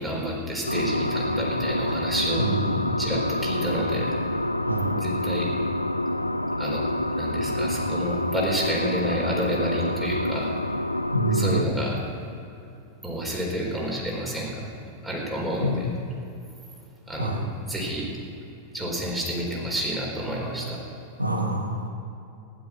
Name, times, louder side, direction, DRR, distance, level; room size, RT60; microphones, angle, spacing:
voice 1, 0.0-2.5 3.0-4.1 5.0-5.5 6.6-6.9 7.2-10.5 11.3-12.0 13.0-14.6 15.0-15.9 17.1-18.1 18.7-20.8, equal, 5° right, -3 dB, 4.2 m, -29 dB
sound 1, 0.7-11.6, left 1 dB, 85° left, 0.4 m, -27 dB
voice 2, 2.4-3.0 4.6-5.0 11.1-11.7 15.6-15.9 17.2-17.5 21.2-21.9, right 1 dB, 80° right, 4 dB, 1.2 m, -26 dB
15.5 x 11.5 x 6.0 m, 2.7 s
figure-of-eight pair, 90°, 0 cm